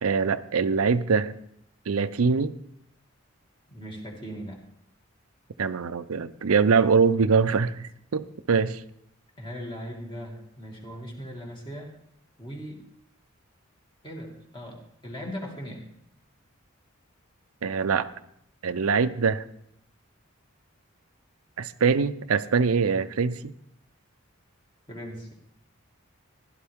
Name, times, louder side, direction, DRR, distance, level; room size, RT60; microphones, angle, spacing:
voice 1, 0.0-1.3 1.9-2.6 5.6-8.8 17.6-18.1 18.6-19.4 21.6-23.5, right 5 dB, 85° right, 12 dB, 0.6 m, -23 dB
voice 2, 3.7-4.6 9.4-11.9 12.4-12.8 14.0-15.9 24.9-25.3, equal, 20° left, 0 dB, 2.4 m, -39 dB
16.0 x 11.5 x 3.6 m, 0.74 s
head